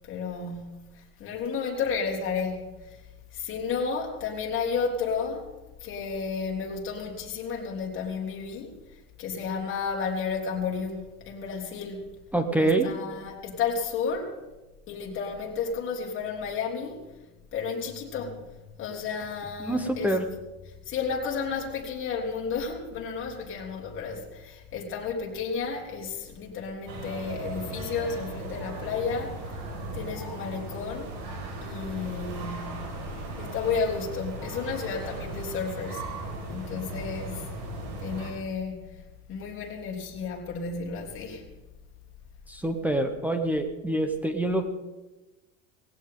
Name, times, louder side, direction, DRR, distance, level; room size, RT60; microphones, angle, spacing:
voice 1, 0.0-3.0 3.3-5.5 5.8-8.7 9.2-12.0 12.6-14.3 14.9-17.0 17.5-20.1 20.8-29.6 29.9-32.9 33.4-36.0 36.5-37.5 38.0-39.0 39.3-41.5, left 5 dB, 35° left, 3.3 m, -32 dB
voice 2, 12.3-12.9 19.6-20.2 42.5-44.6, right 2 dB, 5° right, 0.8 m, -26 dB
sound 1, 26.9-38.3, right 2 dB, 90° right, 6.1 m, -37 dB
18.5 x 16.5 x 3.8 m
cardioid pair, 160°, 35 cm